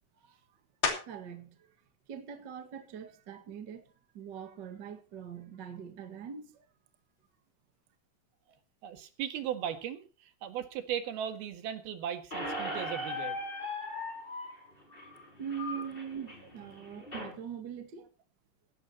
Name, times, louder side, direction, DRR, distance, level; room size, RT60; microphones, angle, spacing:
sound 1, 0.8-1.4 2.0-6.4 6.9-12.1 12.4-18.0, left 6 dB, 55° left, 4.3 m, -44 dB
voice 1, 1.0-1.8 2.1-6.6 15.4-18.1, right 8 dB, 50° right, 1.3 m, -42 dB
voice 2, 8.8-10.0 10.4-13.4, right 9 dB, 70° right, 3.5 m, -37 dB
Squeak, 12.3-17.3, left 1 dB, 10° left, 5.9 m, -39 dB
17.5 x 14.5 x 2.9 m
omnidirectional pair, 4.7 m